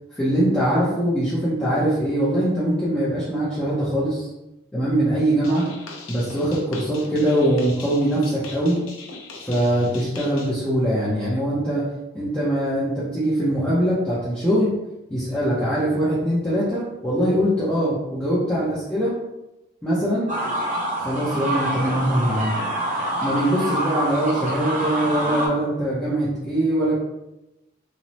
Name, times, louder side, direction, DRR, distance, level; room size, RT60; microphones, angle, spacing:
voice 1, 0.1-4.3 4.7-5.6 6.1-8.8 9.4-11.9 12.1-14.7 15.1-19.2 19.8-20.3 21.0-22.6 23.2-26.9, right 1 dB, 5° left, -10 dB, 0.5 m, -22 dB
sound 1, 5.4-10.5, left 3 dB, 85° left, 0.5 m, -40 dB
sound 2, 20.3-25.5, right 1 dB, 35° right, 0.6 m, -26 dB
2.9 x 2.0 x 2.7 m, 0.95 s
head